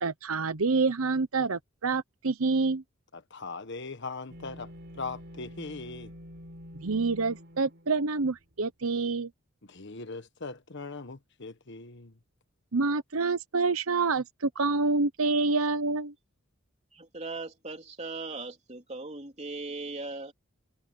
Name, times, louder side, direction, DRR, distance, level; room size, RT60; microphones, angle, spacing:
voice 1, 0.0-2.8 6.8-9.3 12.7-16.1, right 3 dB, 90° right, 1.0 m, -27 dB
voice 2, 3.1-6.1 9.7-12.1, left 3 dB, 55° left, 1.4 m, -40 dB
sound 1, 4.3-8.5, equal, 55° right, 4.5 m, -47 dB
voice 3, 16.9-20.3, right 3 dB, 30° right, 3.6 m, -39 dB
head